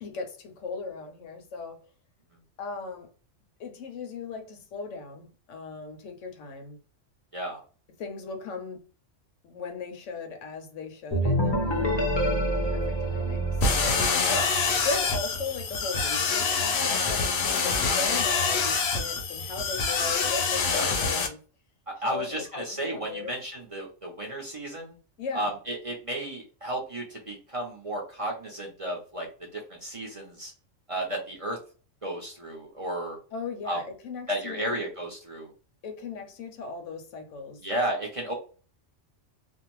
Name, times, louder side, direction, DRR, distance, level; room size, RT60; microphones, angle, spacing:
voice 1, 0.0-1.8 2.6-3.1 3.6-6.8 8.0-8.8 9.4-14.1 14.8-21.4 22.0-23.3 25.2-25.5 33.3-34.8 35.8-37.6, left 4 dB, 80° left, 1.0 m, -37 dB
sound 1, 11.1-14.8, right 1 dB, 30° left, 0.5 m, -27 dB
sound 2, 13.6-21.3, left 4 dB, 65° left, 0.8 m, -26 dB
voice 2, 14.2-14.6 20.7-20.9 21.9-25.0 25.3-29.3 29.5-30.5 30.9-31.6 32.0-33.2 33.6-33.8 34.3-35.5 37.6-38.3, right 1 dB, 35° right, 0.6 m, -33 dB
2.5 x 2.1 x 3.0 m
omnidirectional pair, 1.3 m